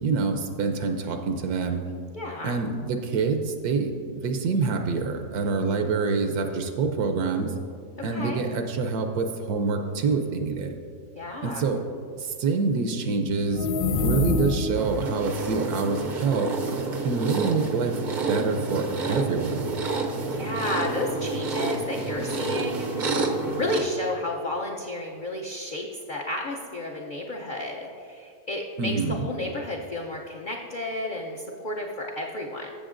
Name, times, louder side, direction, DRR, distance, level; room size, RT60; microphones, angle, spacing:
voice 1, 0.0-1.8 2.4-7.5 8.0-10.8 11.4-11.8 12.2-16.5 17.0-18.0 18.3-19.6 28.8-29.3, right 4 dB, 80° right, 5 dB, 1.1 m, -26 dB
voice 2, 2.1-2.6 8.0-8.4 11.1-11.6 20.3-32.7, left 2 dB, 50° left, -2 dB, 0.6 m, -32 dB
sound 1, 13.4-15.0, left 4 dB, 70° left, 0.9 m, -25 dB
sound 2, 14.7-23.8, right 3 dB, 50° right, 0.5 m, -29 dB
14.0 x 7.4 x 2.5 m, 2.3 s
omnidirectional pair, 1.6 m